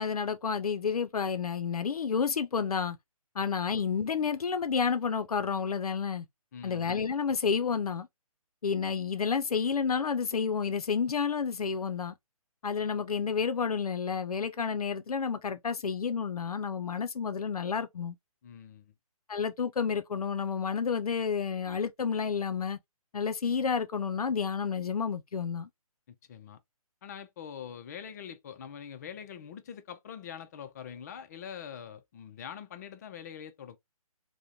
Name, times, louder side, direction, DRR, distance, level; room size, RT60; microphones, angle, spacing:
voice 1, 0.0-3.0 3.4-6.2 6.6-8.1 8.6-12.1 12.6-18.2 19.3-22.8 23.1-25.7, left 6 dB, 80° left, 0.5 m, -30 dB
voice 2, 6.5-7.0 18.4-18.9 26.1-26.6 27.0-33.8, left 8 dB, 30° left, 0.4 m, -44 dB
3.6 x 2.1 x 2.7 m
figure-of-eight pair, 145°, 19 cm